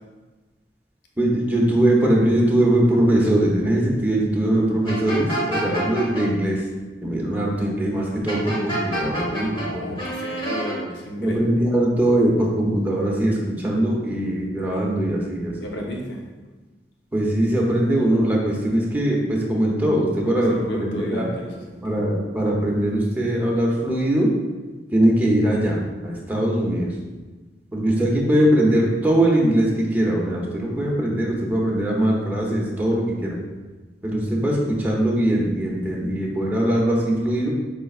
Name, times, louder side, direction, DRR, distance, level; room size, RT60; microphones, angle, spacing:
voice 1, 1.2-6.6 7.0-10.0 11.2-15.5 17.1-21.3 21.8-24.3 24.9-25.8 26.0-26.9 27.7-33.4 34.0-37.5, right 1 dB, 10° right, -3 dB, 0.7 m, -21 dB
sound 1, 4.9-6.2 8.3-9.7 10.0-10.7, right 1 dB, 30° left, 1.1 m, -28 dB
voice 2, 9.3-11.4 15.6-16.2 20.2-22.0, left 1 dB, 80° left, 0 dB, 0.7 m, -33 dB
5.5 x 3.2 x 2.4 m, 1.2 s
head